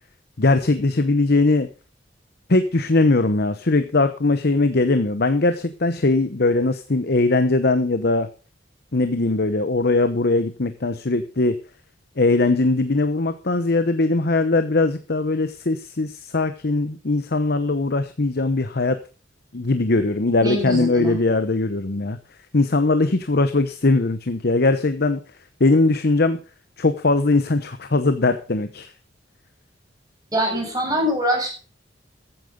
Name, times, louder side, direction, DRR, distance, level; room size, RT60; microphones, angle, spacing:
voice 1, 0.4-1.7 2.5-8.3 8.9-11.6 12.2-19.0 19.5-22.2 22.5-25.2 25.6-26.4 26.8-28.9, left 2 dB, 55° left, 10 dB, 0.9 m, -20 dB
voice 2, 20.4-21.2 30.3-31.5, equal, 20° right, 1 dB, 6.5 m, -23 dB
14.5 x 9.1 x 5.2 m, 0.35 s
head